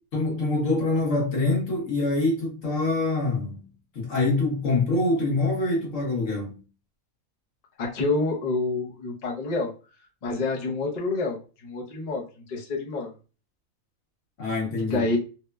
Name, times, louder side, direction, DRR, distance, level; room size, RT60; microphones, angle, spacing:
voice 1, 0.1-3.7 3.9-6.6 14.4-15.0, left 2 dB, 65° left, 1.3 m, -25 dB
voice 2, 7.8-9.7 10.2-12.2 12.5-13.1 14.8-15.2, left 3 dB, 45° left, 0.5 m, -27 dB
3.0 x 2.1 x 2.2 m
omnidirectional pair, 1.5 m